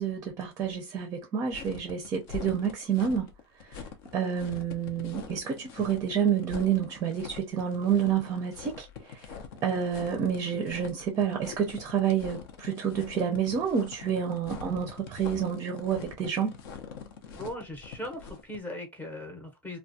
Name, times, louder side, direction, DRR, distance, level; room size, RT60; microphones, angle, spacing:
voice 1, 0.0-3.3 3.6-3.8 4.1-9.4 9.6-16.6, right 8 dB, 25° right, 0.5 m, -29 dB
sound 1, 1.5-18.6, left 6 dB, 60° left, 0.6 m, -44 dB
voice 2, 17.3-19.8, left 1 dB, 15° left, 0.8 m, -39 dB
2.3 x 2.2 x 2.6 m
supercardioid pair, 125°, 13 cm